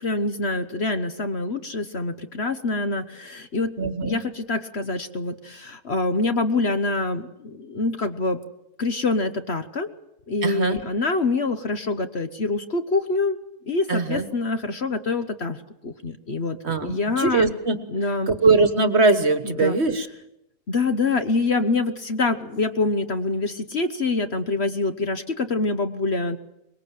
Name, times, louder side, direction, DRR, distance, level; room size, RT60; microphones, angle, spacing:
voice 1, 0.0-3.7 4.0-8.4 8.8-9.9 10.3-13.4 13.7-15.6 15.8-16.6 16.8-17.6 17.9-18.3 19.4-19.8 20.7-26.4, left 3 dB, 45° left, 9 dB, 1.2 m, -25 dB
voice 2, 3.8-4.2 10.4-10.8 13.9-14.3 16.6-17.8 18.3-20.1, right 3 dB, 45° right, 10 dB, 1.5 m, -21 dB
24.0 x 21.5 x 7.6 m, 0.84 s
omnidirectional pair, 1.7 m